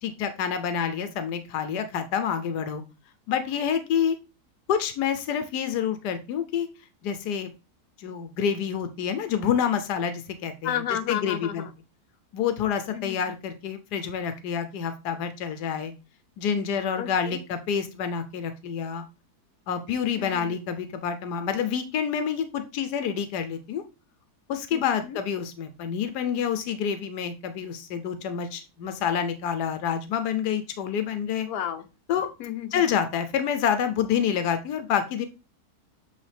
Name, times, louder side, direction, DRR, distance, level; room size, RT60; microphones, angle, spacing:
voice 1, 0.0-2.8 3.3-4.2 4.7-6.7 7.0-7.5 8.0-10.8 11.1-11.7 12.3-15.9 16.4-19.0 19.7-23.8 24.5-31.5 32.1-32.3 32.7-35.3, left 8 dB, 90° left, 9 dB, 1.3 m, -28 dB
voice 2, 10.6-11.7 12.9-13.2 17.0-17.4 20.2-20.6 24.7-25.2 31.5-31.8 32.4-33.0, left 10 dB, 70° left, 6 dB, 1.3 m, -32 dB
8.2 x 3.5 x 3.4 m, 0.30 s
omnidirectional pair, 1.7 m